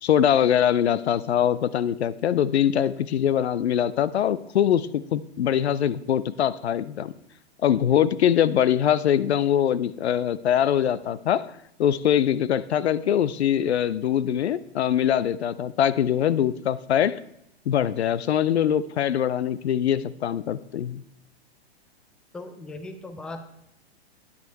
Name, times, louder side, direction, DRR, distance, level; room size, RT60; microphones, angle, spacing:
voice 1, 0.0-7.1 7.6-11.5 11.8-17.2 17.7-21.0, left 10 dB, 85° left, 17 dB, 0.6 m, -23 dB
voice 2, 22.3-23.4, left 2 dB, 5° left, 8 dB, 0.4 m, -38 dB
9.6 x 6.8 x 4.6 m, 0.77 s
hypercardioid pair, 120°, 32 cm